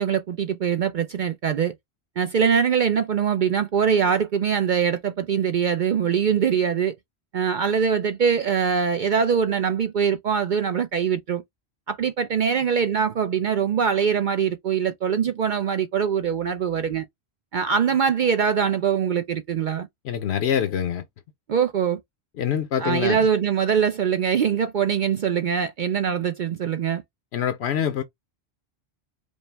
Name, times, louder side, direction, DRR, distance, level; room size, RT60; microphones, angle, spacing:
voice 1, 0.0-1.7 2.2-6.9 7.3-11.4 11.9-17.1 17.5-19.9 21.5-22.0 22.8-27.0, right 7 dB, 55° right, 0.6 m, -23 dB
voice 2, 20.0-21.0 22.4-23.2 27.3-28.0, left 9 dB, 80° left, 0.9 m, -25 dB
5.2 x 2.1 x 3.3 m
omnidirectional pair, 1.1 m